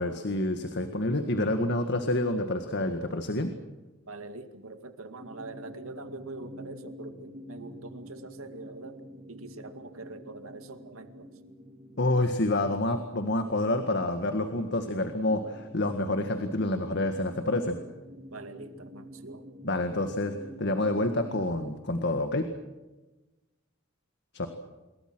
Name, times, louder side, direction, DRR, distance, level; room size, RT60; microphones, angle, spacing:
voice 1, 0.0-3.5 12.0-17.8 19.6-20.3 20.6-22.5 24.3-24.5, left 1 dB, 55° left, 7 dB, 1.9 m, -28 dB
voice 2, 4.1-9.0 9.3-11.3 18.3-19.5, right 2 dB, 90° right, 8 dB, 2.3 m, -43 dB
sound 1, 5.2-21.5, equal, 35° right, 3.1 m, -48 dB
27.5 x 22.5 x 6.3 m, 1.1 s
head